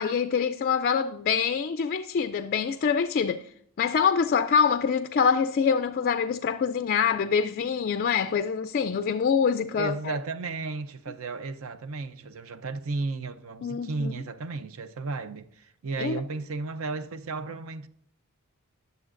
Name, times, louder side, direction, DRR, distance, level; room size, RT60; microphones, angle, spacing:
voice 1, 0.0-3.5 3.8-10.1 13.6-14.1 16.0-16.2, left 6 dB, 45° left, 0.3 m, -25 dB
voice 2, 9.8-17.9, right 3 dB, 65° right, 0.6 m, -34 dB
19.0 x 6.8 x 2.5 m
head